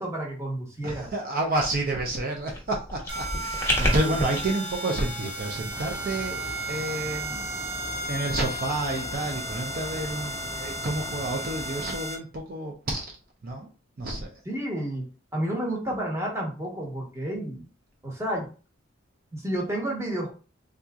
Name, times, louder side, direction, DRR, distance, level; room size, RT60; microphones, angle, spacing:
voice 1, 0.0-1.1 14.4-17.6 18.0-18.5 19.3-20.3, right 1 dB, 15° right, -2 dB, 1.0 m, -31 dB
voice 2, 0.8-7.7 8.1-13.0 13.4-13.7 14.0-14.4, right 2 dB, 50° right, 1 dB, 0.6 m, -30 dB
sound 1, 2.5-4.4, left 1 dB, 15° left, 1.0 m, -29 dB
sound 2, 3.1-12.2, right 2 dB, 75° right, 1.3 m, -34 dB
sound 3, 5.7-11.9, left 2 dB, 30° left, 0.5 m, -40 dB
3.6 x 2.8 x 2.4 m, 0.35 s
head